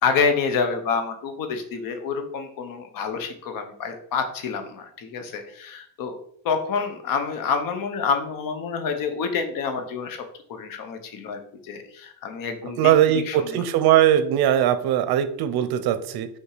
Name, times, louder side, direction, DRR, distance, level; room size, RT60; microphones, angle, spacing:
voice 1, 0.0-6.1 6.4-10.2 10.5-13.6, left 5 dB, 60° left, 7 dB, 1.1 m, -28 dB
voice 2, 12.8-16.3, right 11 dB, 75° right, 11 dB, 0.8 m, -20 dB
5.7 x 4.5 x 5.0 m, 0.65 s
cardioid pair, 180°, 37 cm